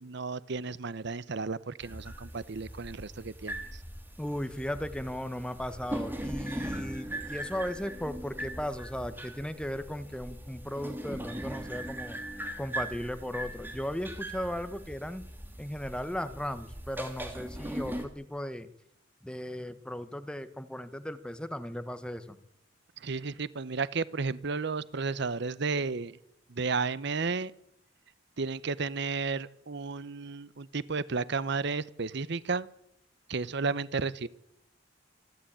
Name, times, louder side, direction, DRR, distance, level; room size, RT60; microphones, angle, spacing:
voice 1, 0.0-3.8 23.0-26.2 26.5-27.5 28.4-32.7 33.3-34.3, right 4 dB, 65° right, 18 dB, 0.8 m, -33 dB
sound 1, 1.8-18.0, right 1 dB, 10° right, 2.9 m, -40 dB
voice 2, 4.2-12.2 12.6-15.2 15.6-18.7 19.2-22.4, equal, 5° left, 11 dB, 1.2 m, -36 dB
26.5 x 12.0 x 8.8 m, 0.79 s
head